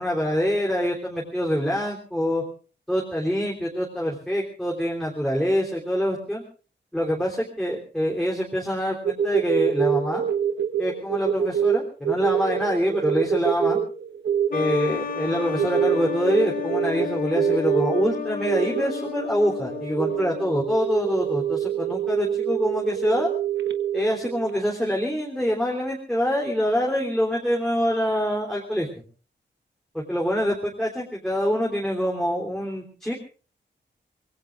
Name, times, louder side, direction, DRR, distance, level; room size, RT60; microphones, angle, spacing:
voice 1, 0.0-2.4 2.9-6.4 6.9-10.2 10.8-13.8 14.5-23.3 23.9-29.0 29.9-33.1, equal, ahead, -1 dB, 3.4 m, -25 dB
sound 1, 9.1-24.7, right 8 dB, 65° right, 1.4 m, -26 dB
sound 2, 14.5-20.8, left 9 dB, 45° left, 0.8 m, -32 dB
25.0 x 22.0 x 2.5 m, 0.40 s
wide cardioid pair, 165°, 19 cm